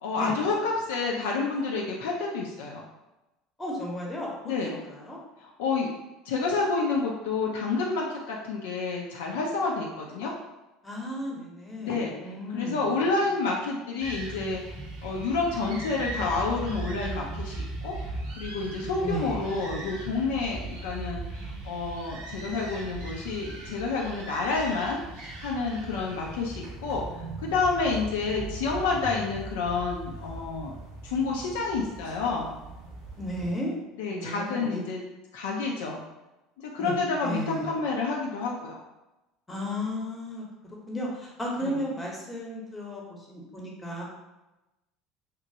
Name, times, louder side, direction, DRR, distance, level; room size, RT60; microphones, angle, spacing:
voice 1, 0.0-2.8 4.5-4.8 5.4-6.0 6.3-10.3 11.8-12.2 12.5-14.8 15.0-18.0 18.4-27.0 27.4-30.8 31.0-32.5 34.0-35.0 35.3-36.0 36.6-38.8 41.6-41.7, left 4 dB, 65° left, -2 dB, 0.3 m, -29 dB
voice 2, 3.6-5.2 10.8-12.9 19.0-19.4 33.2-33.8 34.1-34.8 36.8-37.8 39.5-44.0, left 1 dB, 15° left, -3 dB, 0.8 m, -34 dB
sound 1, 14.0-33.5, right 2 dB, 60° right, 0.6 m, -39 dB
2.9 x 2.1 x 2.6 m, 1.0 s
figure-of-eight pair, 65°, 0 cm